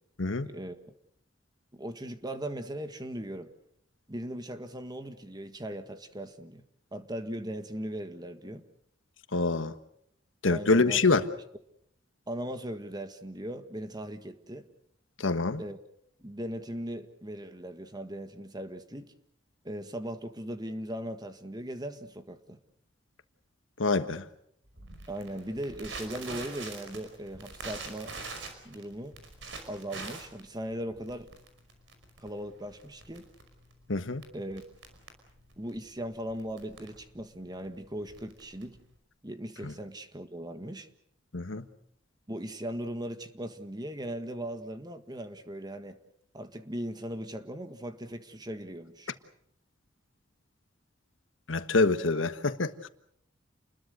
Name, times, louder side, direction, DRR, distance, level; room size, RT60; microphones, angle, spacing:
voice 1, 0.4-0.9 1.7-3.5 4.1-6.6 6.9-8.6 10.5-11.1 12.3-14.7 15.6-15.8 16.2-19.1 19.6-22.6 25.1-28.1 28.6-29.2 29.7-31.3 32.2-33.2 34.3-34.6 35.6-38.8 39.2-40.9 42.3-45.9 46.3-49.1, right 1 dB, 20° right, 1.7 m, -38 dB
voice 2, 9.3-9.7 10.4-11.2 15.2-15.6 23.8-24.2 33.9-34.2 39.6-39.7 41.3-41.6 51.5-52.9, left 3 dB, 85° left, 1.4 m, -26 dB
Crackle, 24.8-39.0, right 3 dB, 70° right, 5.3 m, -45 dB
29.0 x 21.5 x 6.7 m
head